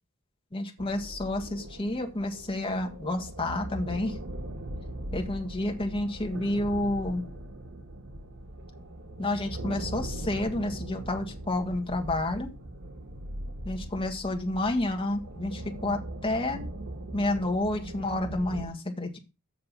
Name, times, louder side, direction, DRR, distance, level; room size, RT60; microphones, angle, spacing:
voice 1, 0.5-4.2 5.1-7.2 9.2-12.5 13.6-16.6 17.1-19.2, left 1 dB, 25° left, 4 dB, 1.6 m, -30 dB
sound 1, 0.8-18.7, right 1 dB, 55° right, 1.2 m, -40 dB
7.7 x 6.8 x 5.5 m, 0.29 s
head